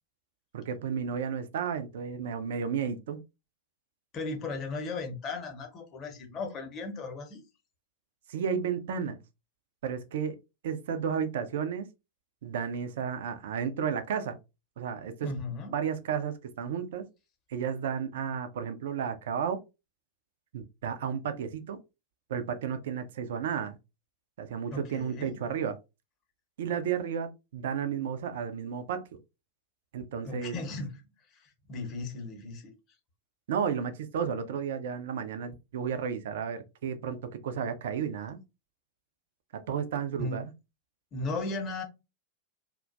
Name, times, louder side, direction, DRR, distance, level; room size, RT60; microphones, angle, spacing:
voice 1, 0.5-3.2 8.3-9.2 9.8-10.4 10.6-11.9 12.4-14.4 14.8-15.3 15.7-17.0 17.5-19.6 20.5-21.8 22.3-23.8 24.4-25.8 26.6-29.0 29.9-30.5 33.5-37.2 37.4-38.4 39.5-40.4, right 7 dB, 60° right, 0.3 m, -32 dB
voice 2, 4.1-7.4 15.2-15.7 24.7-25.4 30.2-32.8 40.2-40.4 41.1-41.8, left 3 dB, 30° left, 0.7 m, -36 dB
2.4 x 2.1 x 2.4 m
figure-of-eight pair, 90°, 0 cm